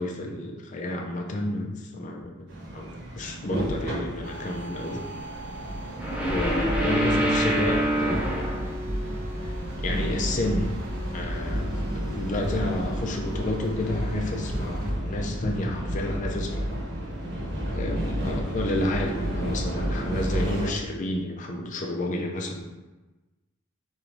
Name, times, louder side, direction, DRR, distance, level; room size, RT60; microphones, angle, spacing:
voice 1, 0.0-2.9 3.2-5.0 6.2-8.5 9.4-9.5 9.8-10.7 11.1-16.6 17.7-22.6, left 1 dB, 35° left, 1 dB, 0.4 m, -30 dB
sound 1, 2.5-20.7, equal, 55° right, 1.2 m, -31 dB
sound 2, 4.2-14.9, equal, 75° right, 0.7 m, -42 dB
sound 3, 4.9-5.0 5.3-5.6 5.9-10.0 10.3-10.4 10.6-10.7 11.0-11.1 11.4-11.5 12.0-12.2 12.4-13.0, right 1 dB, 5° right, 0.8 m, -27 dB
3.8 x 3.1 x 4.6 m, 1.1 s
head